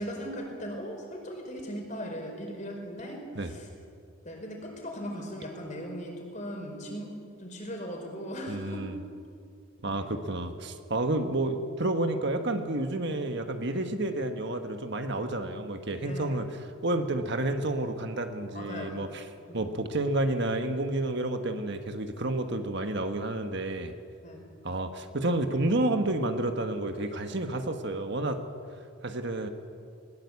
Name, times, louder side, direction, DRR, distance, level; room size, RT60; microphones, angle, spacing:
voice 1, 0.0-3.7 4.2-7.1 7.4-8.8 9.9-10.2 16.0-16.4 18.5-19.0 19.5-19.6 24.2-24.5, equal, 35° left, 2 dB, 5.0 m, -38 dB
voice 2, 8.5-9.0 9.8-19.3 19.5-23.9 24.6-28.4 29.0-29.5, right 2 dB, 55° right, 6 dB, 1.5 m, -30 dB
21.0 x 21.0 x 8.5 m, 2.4 s
head